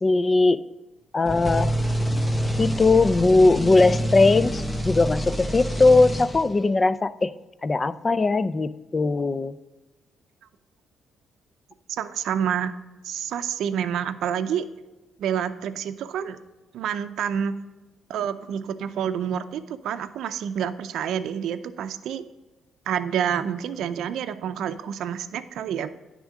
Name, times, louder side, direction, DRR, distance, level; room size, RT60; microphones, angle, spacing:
voice 1, 0.0-0.6 1.1-1.7 2.6-7.3 7.6-9.6, left 3 dB, 30° left, 15 dB, 0.4 m, -20 dB
sound 1, 1.3-6.7, equal, 10° left, 0.8 m, -27 dB
voice 2, 11.9-12.7 13.0-14.7 15.2-16.4 16.7-17.5 18.1-22.2 22.9-25.9, right 8 dB, 80° right, 10 dB, 0.5 m, -28 dB
10.0 x 3.7 x 6.2 m, 1.1 s
cardioid pair, 90°, 0 cm